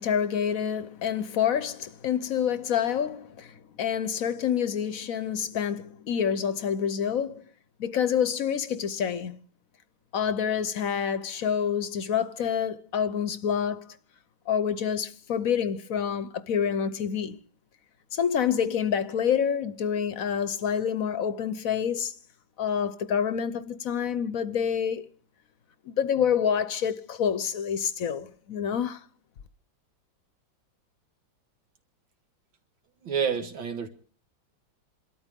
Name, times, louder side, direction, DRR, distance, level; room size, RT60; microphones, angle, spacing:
voice 1, 0.0-7.4 7.8-9.4 10.1-14.0 14.5-17.4 18.1-22.2 22.6-25.1 25.9-29.0, left 8 dB, 55° left, 1.1 m, -27 dB
voice 2, 33.0-33.9, right 7 dB, 75° right, 2.4 m, -28 dB
27.5 x 13.0 x 3.6 m
omnidirectional pair, 2.1 m